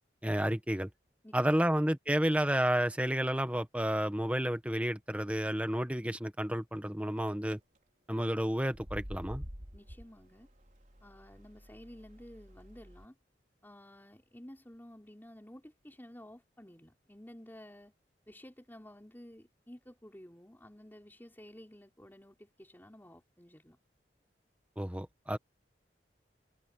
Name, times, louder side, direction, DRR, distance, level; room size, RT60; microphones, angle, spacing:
voice 1, 0.2-0.9 1.3-7.6 8.1-9.4 24.8-25.4, right 1 dB, 10° right, 1.5 m, -31 dB
voice 2, 1.2-1.6 9.7-10.5 11.0-13.1 13.6-17.9 18.3-23.8, left 1 dB, 10° left, 4.6 m, -53 dB
sound 1, 7.2-7.5 8.6-13.0, equal, 45° right, 4.1 m, -48 dB
head